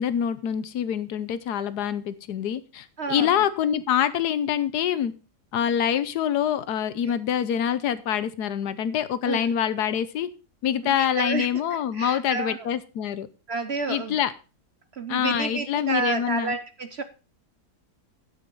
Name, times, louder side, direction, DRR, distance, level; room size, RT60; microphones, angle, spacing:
voice 1, 0.0-5.1 5.5-10.3 10.6-13.3 13.9-14.3 15.1-16.6, left 9 dB, 75° left, 15 dB, 1.3 m, -25 dB
voice 2, 3.0-3.4 9.2-9.5 10.8-11.5 11.9-12.7 13.5-14.2 14.9-17.0, right 4 dB, 55° right, 10 dB, 0.8 m, -30 dB
10.0 x 8.1 x 5.3 m, 0.33 s
omnidirectional pair, 1.8 m